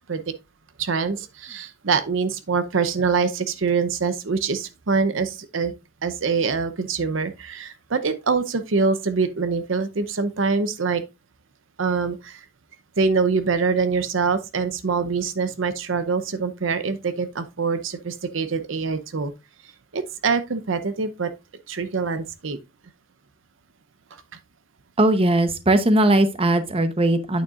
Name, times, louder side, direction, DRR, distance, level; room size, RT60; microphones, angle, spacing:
voice 1, 0.8-5.7 6.0-11.0 11.8-12.4 13.0-19.3 19.9-21.3 21.7-22.6, right 5 dB, 75° right, 0.7 m, -24 dB
voice 2, 25.0-27.4, right 1 dB, 30° right, 0.9 m, -19 dB
8.8 x 6.9 x 2.4 m
head